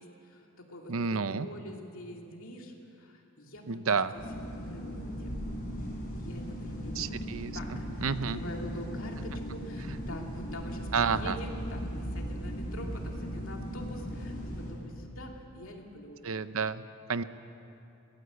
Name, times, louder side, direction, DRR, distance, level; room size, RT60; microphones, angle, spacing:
voice 1, 0.0-5.4 6.1-7.2 7.5-16.5, equal, 65° left, 1 dB, 2.7 m, -45 dB
voice 2, 0.9-1.5 3.7-4.1 7.0-7.6 8.0-8.4 9.9-10.0 10.9-11.4 16.2-16.8 17.1-17.2, right 5 dB, 70° right, 13 dB, 0.7 m, -30 dB
sound 1, 4.2-14.7, equal, 40° left, 6.6 m, -38 dB
21.5 x 17.5 x 8.2 m, 2.7 s
head